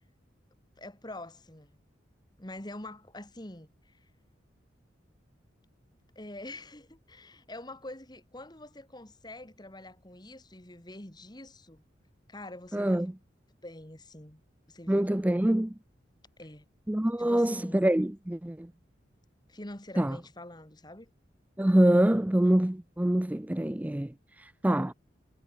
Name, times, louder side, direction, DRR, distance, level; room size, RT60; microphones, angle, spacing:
voice 1, 0.8-1.8 2.4-4.1 6.2-11.8 12.3-13.1 13.6-14.4 14.7-15.2 16.4-16.7 17.2-17.9 19.5-21.1, left 1 dB, 20° left, 2.2 m, -45 dB
voice 2, 12.7-13.1 14.9-15.7 16.9-18.7 20.0-20.2 21.6-24.9, right 1 dB, 10° right, 0.4 m, -25 dB
head